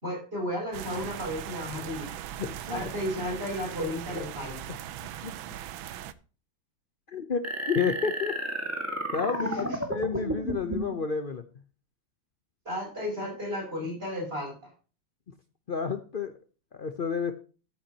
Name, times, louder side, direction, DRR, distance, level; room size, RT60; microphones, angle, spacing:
voice 1, 0.0-2.2 2.7-4.6 9.4-9.8 12.6-14.5, left 1 dB, 25° right, -1 dB, 6.4 m, -33 dB
sound 1, 0.7-6.1, right 11 dB, 85° right, 1.5 m, -39 dB
voice 2, 2.4-2.8 4.7-4.8 5.2-5.3 7.1-8.4 9.1-11.4 15.7-16.3 16.7-17.3, left 5 dB, 80° left, 9 dB, 0.4 m, -30 dB
sound 2, 7.4-11.0, right 1 dB, 10° right, 1.7 m, -32 dB
14.0 x 8.5 x 2.9 m, 0.36 s
omnidirectional pair, 2.2 m